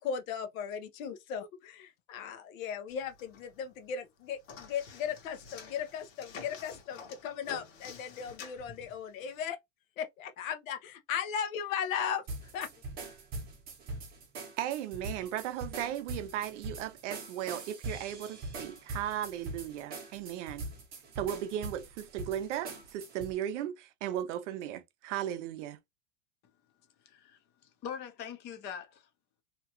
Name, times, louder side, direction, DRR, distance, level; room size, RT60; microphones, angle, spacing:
voice 1, 0.0-9.6 10.0-12.2 12.5-12.7, left 8 dB, 75° left, 0.8 m, -37 dB
sound 1, 2.9-3.8 4.0-9.4, left 5 dB, 60° left, 1.3 m, -49 dB
sound 2, 12.3-23.3, right 2 dB, 25° right, 0.8 m, -42 dB
voice 2, 14.6-20.7 21.2-25.8, right 11 dB, 60° right, 0.5 m, -36 dB
voice 3, 27.0-29.1, left 8 dB, 25° left, 0.6 m, -43 dB
2.8 x 2.3 x 2.8 m
supercardioid pair, 160°, 40 cm